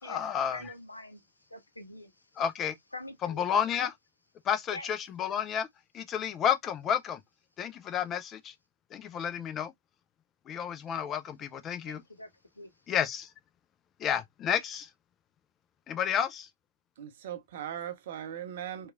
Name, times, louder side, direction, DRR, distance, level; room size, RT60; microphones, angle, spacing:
voice 1, 0.0-0.7 2.4-2.7 3.2-3.9 4.5-5.7 5.9-7.2 7.6-8.5 8.9-9.7 10.5-12.0 12.9-13.3 14.0-14.9 15.9-16.5, left 8 dB, 20° left, 0.4 m, -31 dB
voice 2, 0.5-1.2 1.5-2.1 2.9-3.4 4.7-4.9 11.9-12.3 12.6-12.7, left 1 dB, 80° left, 0.6 m, -44 dB
voice 3, 17.0-18.9, right 10 dB, 50° right, 0.5 m, -39 dB
2.9 x 2.3 x 2.4 m
figure-of-eight pair, 110°, 0 cm